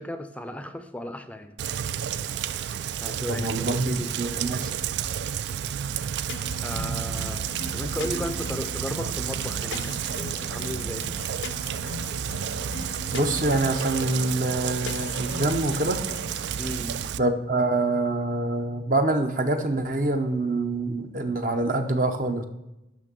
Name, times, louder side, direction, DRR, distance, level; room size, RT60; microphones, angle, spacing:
voice 1, 0.0-1.6 3.0-4.1 6.6-7.4 7.7-11.1 16.6-17.0, left 1 dB, 5° left, 9 dB, 0.5 m, -35 dB
Rain, 1.6-17.2, right 8 dB, 70° right, 0.3 m, -31 dB
voice 2, 3.3-4.7 13.1-16.0 17.2-22.4, right 2 dB, 45° right, 6 dB, 0.7 m, -25 dB
sound 1, 6.3-16.6, left 4 dB, 80° left, 0.6 m, -40 dB
6.2 x 6.2 x 6.8 m, 0.95 s
head